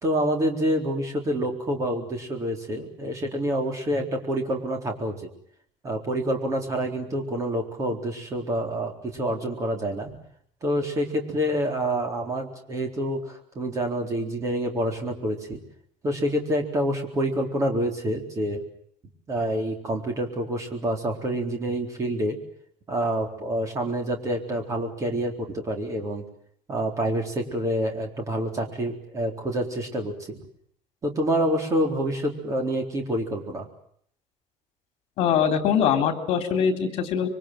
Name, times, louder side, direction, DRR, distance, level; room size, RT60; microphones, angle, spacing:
voice 1, 0.0-5.2 5.8-10.1 10.6-15.6 16.0-18.6 19.3-22.4 22.9-26.2 26.7-30.4 31.0-33.7, right 1 dB, 25° right, 3 dB, 4.0 m, -27 dB
voice 2, 35.2-37.3, left 7 dB, 50° left, 7 dB, 3.5 m, -22 dB
26.0 x 24.0 x 7.7 m, 0.65 s
cardioid pair, 180°, 13 cm